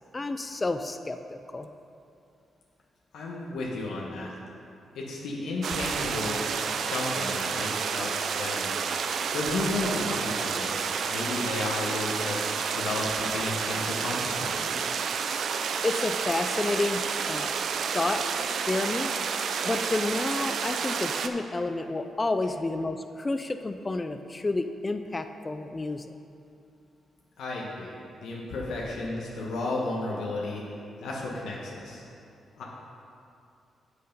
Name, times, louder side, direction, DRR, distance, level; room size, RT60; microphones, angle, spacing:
voice 1, 0.1-1.7 15.8-17.5 17.9-18.2 18.5-19.1 19.6-26.0, left 2 dB, 20° left, 8 dB, 0.3 m, -30 dB
voice 2, 3.1-4.3 4.9-6.4 6.7-8.8 9.3-12.4 12.7-14.7 27.4-27.9 28.2-30.6 31.0-32.0 32.6-32.7, left 2 dB, 85° left, -4 dB, 1.2 m, -33 dB
sound 1, 5.6-21.3, right 6 dB, 65° right, 0.4 m, -30 dB
7.9 x 6.6 x 5.4 m, 2.5 s
cardioid pair, 120°, 0 cm